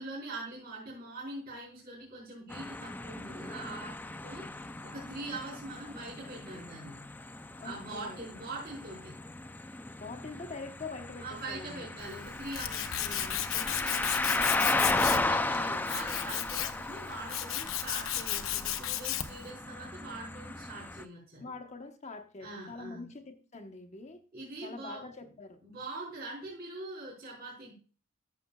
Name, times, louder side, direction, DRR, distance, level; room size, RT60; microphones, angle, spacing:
voice 1, 0.0-7.0 7.6-9.2 11.2-14.6 15.1-21.5 22.4-23.1 24.3-25.1 25.6-27.7, right 2 dB, 50° right, -5 dB, 4.3 m, -43 dB
sound 1, 2.5-21.0, left 2 dB, 10° left, 0.3 m, -35 dB
voice 2, 7.6-8.2 10.0-11.9 21.4-24.2 24.6-25.6, left 3 dB, 35° left, 5 dB, 1.0 m, -44 dB
Tools, 12.0-19.5, left 11 dB, 80° left, 0.7 m, -34 dB
13.5 x 7.0 x 2.3 m, 0.37 s
head